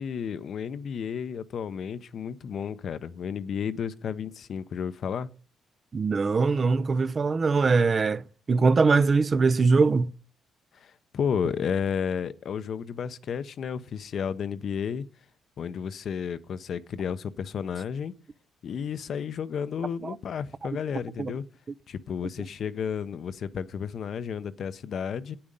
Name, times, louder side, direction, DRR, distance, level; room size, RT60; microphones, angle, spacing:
voice 1, 0.0-5.3 10.7-15.0 15.6-18.1 18.6-21.4 21.9-25.4, left 7 dB, 60° left, 0.6 m, -32 dB
voice 2, 5.9-10.1 20.0-20.1 21.2-21.3, right 4 dB, 35° right, 0.4 m, -22 dB
8.7 x 8.7 x 5.3 m
cardioid pair, 90°, 0 cm